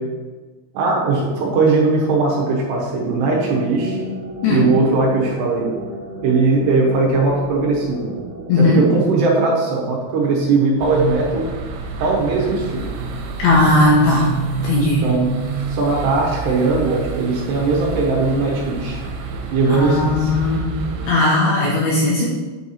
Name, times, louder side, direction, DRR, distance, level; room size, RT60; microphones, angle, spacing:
voice 1, 0.7-4.0 4.5-5.7 6.2-8.2 8.6-11.5 12.0-12.9 15.0-15.3 15.7-19.0 19.5-20.3, right 3 dB, 70° right, -3 dB, 3.0 m, -19 dB
sound 1, 2.7-10.1, equal, 50° right, 3.1 m, -33 dB
voice 2, 8.5-8.9 13.4-14.3 14.6-15.0 19.7-20.8 21.1-22.3, left 2 dB, 75° left, -4 dB, 2.4 m, -17 dB
sound 2, 10.8-21.1, right 5 dB, 85° right, 3.3 m, -28 dB
9.1 x 4.6 x 4.2 m, 1.3 s
omnidirectional pair, 5.5 m